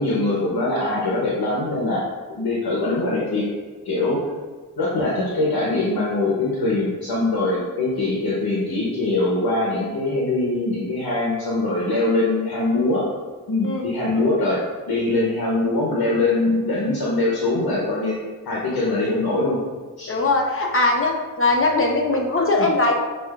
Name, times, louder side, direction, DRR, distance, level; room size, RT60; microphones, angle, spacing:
voice 1, 0.0-2.1 2.4-3.5 3.8-4.2 4.8-13.0 13.5-18.2 18.4-19.6 20.0-20.1 22.6-22.7, left 2 dB, 80° left, -5 dB, 0.8 m, -22 dB
voice 2, 20.1-23.0, left 2 dB, 35° left, 1 dB, 0.8 m, -21 dB
6.3 x 2.5 x 2.3 m, 1.4 s
cardioid pair, 60°, 36 cm